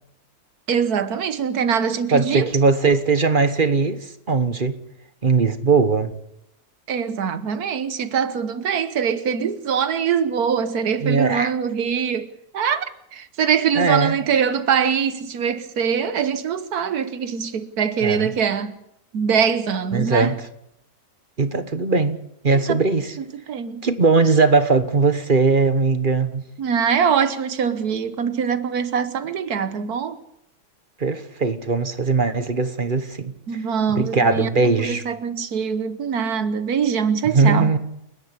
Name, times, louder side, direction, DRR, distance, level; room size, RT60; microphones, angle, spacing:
voice 1, 0.7-2.5 6.9-12.9 13.1-18.7 19.1-20.3 22.5-22.8 23.5-23.9 26.6-30.2 33.5-34.5 34.8-37.7, right 7 dB, 80° right, 1.6 m, -23 dB
voice 2, 2.1-4.8 5.2-6.1 11.0-11.5 13.7-14.2 18.0-18.3 19.9-20.4 21.4-23.2 23.8-26.4 31.0-33.6 33.9-35.0 37.3-37.8, right 4 dB, 35° right, 1.4 m, -20 dB
29.5 x 10.5 x 8.4 m
omnidirectional pair, 1.6 m